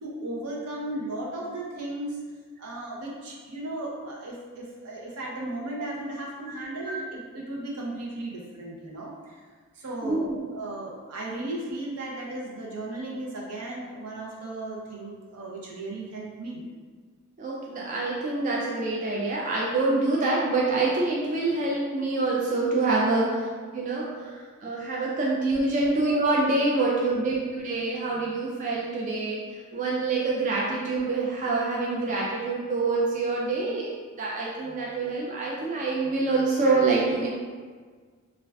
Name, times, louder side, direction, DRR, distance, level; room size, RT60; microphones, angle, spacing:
voice 1, 0.0-2.2 2.6-9.5 9.7-10.2 10.5-16.6 23.0-23.3 24.0-24.3 27.0-27.4, right 1 dB, 80° right, -3 dB, 0.6 m, -36 dB
voice 2, 10.0-10.4 17.4-23.3 23.7-29.4 29.7-37.3, right 3 dB, 35° right, -4 dB, 0.3 m, -26 dB
2.3 x 2.2 x 3.3 m, 1.5 s
head